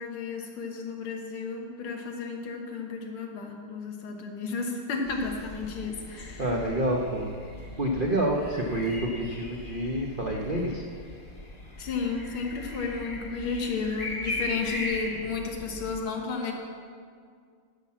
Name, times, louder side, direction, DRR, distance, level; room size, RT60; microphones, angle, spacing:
voice 1, 0.0-6.4 11.8-16.5, left 4 dB, 90° left, 2 dB, 2.1 m, -33 dB
sound 1, 5.0-16.0, left 1 dB, 30° left, 1.2 m, -39 dB
voice 2, 6.4-7.3 7.8-10.8, right 1 dB, 70° right, -1 dB, 0.5 m, -28 dB
11.5 x 5.8 x 7.3 m, 2.1 s
omnidirectional pair, 2.3 m